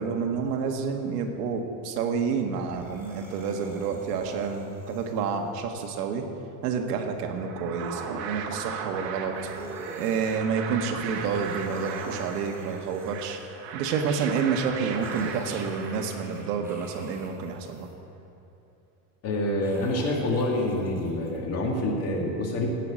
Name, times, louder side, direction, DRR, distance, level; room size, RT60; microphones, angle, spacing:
voice 1, 0.0-6.2 6.6-9.3 10.0-13.4 13.7-17.9, right 5 dB, 90° right, 4 dB, 1.7 m, -29 dB
sound 1, 2.5-5.6 9.3-10.4 10.9-13.7 14.9-17.9 19.4-21.4, right 2 dB, 5° right, 2.1 m, -47 dB
sound 2, 7.2-16.6, right 6 dB, 55° right, 1.4 m, -37 dB
voice 2, 19.2-22.7, left 1 dB, 35° left, -1 dB, 2.2 m, -27 dB
16.5 x 5.9 x 8.3 m, 2.8 s
supercardioid pair, 160°, 45 cm